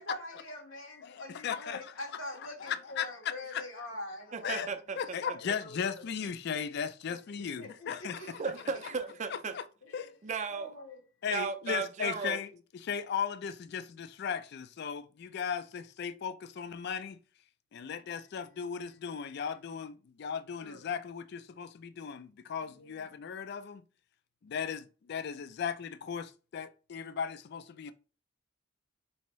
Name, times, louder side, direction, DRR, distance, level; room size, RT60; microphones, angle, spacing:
voice 1, 0.0-4.6 5.2-6.1 7.4-8.4 9.8-10.1 10.5-11.0 20.6-20.8 22.6-23.0, left 1 dB, 80° left, 1.2 m, -44 dB
voice 2, 1.0-1.8 2.6-3.1 3.5-3.6 4.4-4.7 5.0-8.2 9.5-9.6 9.9-10.2 11.2-12.5 12.8-17.2 17.7-23.8 24.4-27.9, left 7 dB, 55° left, 0.3 m, -36 dB
voice 3, 4.3-5.2 8.2-9.6 10.2-10.7 11.3-12.4, right 5 dB, 35° right, 0.4 m, -36 dB
4.4 x 2.8 x 3.1 m
head